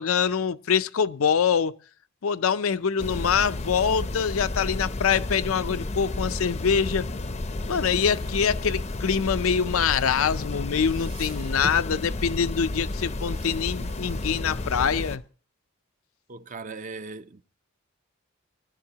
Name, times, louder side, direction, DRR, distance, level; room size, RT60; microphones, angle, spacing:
voice 1, 0.0-1.7 2.2-7.1 7.7-15.2, left 7 dB, 80° left, 0.5 m, -24 dB
sound 1, 3.0-15.2, left 2 dB, 35° left, 0.6 m, -32 dB
sound 2, 7.7-10.4 10.7-12.0 13.0-14.9, right 2 dB, 70° right, 2.6 m, -46 dB
voice 2, 16.3-17.4, right 4 dB, 35° right, 0.5 m, -38 dB
19.5 x 11.5 x 2.9 m
head